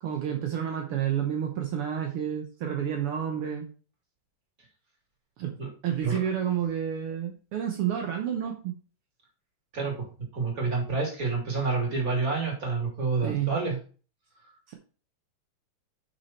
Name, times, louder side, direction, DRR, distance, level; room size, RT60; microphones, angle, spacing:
voice 1, 0.0-3.7 5.4-5.6 5.8-8.7 13.2-13.5 14.7-14.8, right 9 dB, 65° right, 3 dB, 1.4 m, -30 dB
voice 2, 9.7-13.8, right 4 dB, 25° right, 0 dB, 3.3 m, -28 dB
8.7 x 6.1 x 4.4 m, 0.37 s
omnidirectional pair, 3.8 m